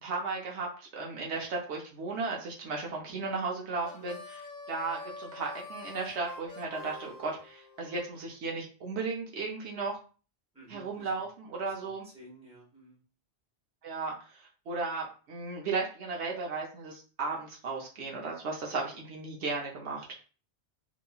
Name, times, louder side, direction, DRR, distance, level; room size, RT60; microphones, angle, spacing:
voice 1, 0.0-9.9 10.7-12.1 13.8-20.0, right 4 dB, 70° right, -1 dB, 0.9 m, -35 dB
Harmonica, 3.8-8.1, left 3 dB, 50° left, 0.5 m, -46 dB
voice 2, 10.5-11.2 11.8-13.0, right 1 dB, 5° right, -4 dB, 0.9 m, -53 dB
2.9 x 2.4 x 2.3 m, 0.37 s
omnidirectional pair, 1.2 m